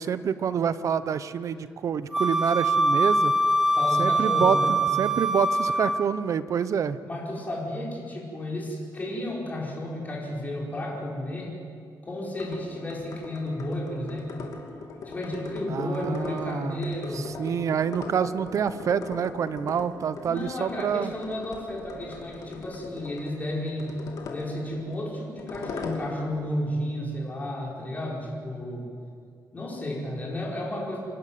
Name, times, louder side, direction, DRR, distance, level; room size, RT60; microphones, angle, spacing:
voice 1, 0.0-3.3 4.0-7.0 15.7-16.8 17.1-21.1, right 7 dB, 50° right, 14 dB, 0.7 m, -27 dB
Wind instrument woodwind instrument, 2.1-6.2, right 1 dB, 5° right, 0.8 m, -23 dB
voice 2, 3.6-4.7 7.0-11.6 12.0-14.5 15.1-17.2 20.2-24.0 24.2-28.9 29.5-31.0, left 1 dB, 25° left, -3 dB, 5.1 m, -32 dB
sound 1, 12.3-26.4, left 3 dB, 55° left, 2.7 m, -40 dB
28.0 x 12.0 x 9.4 m, 2.3 s
wide cardioid pair, 160°, 7 cm